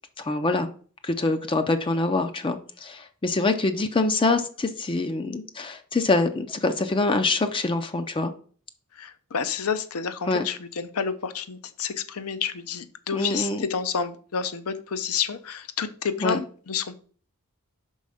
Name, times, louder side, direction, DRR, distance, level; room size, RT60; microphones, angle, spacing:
voice 1, 0.2-0.7 1.0-8.3 10.3-10.5 13.1-13.6 16.2-16.4, left 3 dB, 25° left, 8 dB, 0.5 m, -25 dB
voice 2, 9.0-17.0, left 6 dB, 70° left, 12 dB, 0.6 m, -29 dB
5.4 x 4.3 x 4.9 m, 0.44 s
head